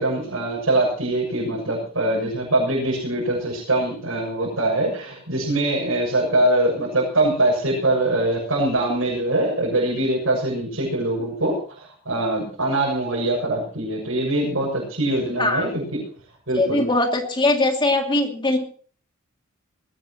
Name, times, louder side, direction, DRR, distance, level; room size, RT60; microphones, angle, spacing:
voice 1, 0.0-16.0 16.5-16.8, right 1 dB, 75° right, -4 dB, 7.2 m, -23 dB
voice 2, 16.6-18.6, left 2 dB, 25° left, 3 dB, 2.6 m, -21 dB
21.0 x 18.0 x 3.0 m, 0.43 s
head